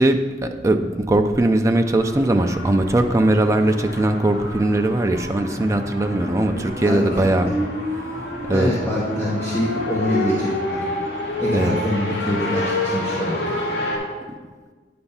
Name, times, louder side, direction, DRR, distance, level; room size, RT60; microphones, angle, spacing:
voice 1, 0.0-7.5 8.1-8.7 11.5-11.7, right 1 dB, 15° right, 5 dB, 0.4 m, -20 dB
sound 1, 1.9-14.0, left 1 dB, 65° left, 1.8 m, -28 dB
voice 2, 8.5-10.8 11.4-13.7, left 1 dB, 15° left, -6 dB, 0.9 m, -25 dB
9.0 x 3.4 x 5.6 m, 1.4 s
head